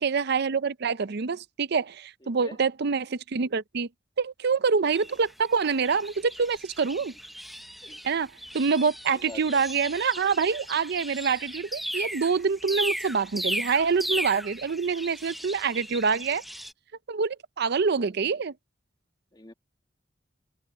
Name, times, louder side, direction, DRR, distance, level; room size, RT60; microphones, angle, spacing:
voice 1, 0.0-3.9 4.2-7.1 8.0-16.4 17.1-18.5, right 5 dB, 60° right, 0.6 m, -26 dB
voice 2, 2.2-2.6 7.8-8.0 9.1-9.6 19.3-19.5, left 2 dB, 20° left, 1.9 m, -45 dB
sound 1, 4.9-16.7, equal, ahead, 0.7 m, -36 dB
head